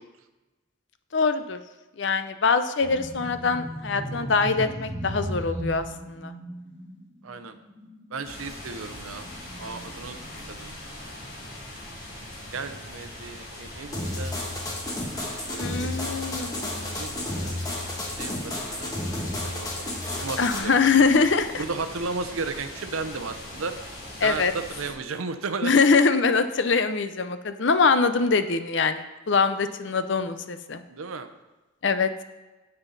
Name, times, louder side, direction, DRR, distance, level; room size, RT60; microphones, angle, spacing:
voice 1, 1.1-1.6 2.0-6.3 15.6-17.0 20.4-21.6 24.2-24.5 25.6-30.8 31.8-32.1, left 4 dB, 55° left, 10 dB, 0.6 m, -23 dB
sound 1, 2.8-12.8 13.1-13.3 14.1-15.1, equal, 15° right, 1.1 m, -38 dB
voice 2, 7.2-7.5 8.1-9.3 9.6-10.2 10.5-10.7 12.5-14.4 15.3-17.6 18.2-18.9 19.4-19.9 20.2-20.7 21.6-23.7 24.2-25.8 30.9-31.3, right 4 dB, 85° right, 9 dB, 0.8 m, -35 dB
sound 2, 8.2-24.9, left 1 dB, 80° left, 3.3 m, -41 dB
sound 3, 13.9-20.6, left 1 dB, 15° left, 1.3 m, -32 dB
9.8 x 7.8 x 4.0 m, 1.2 s
head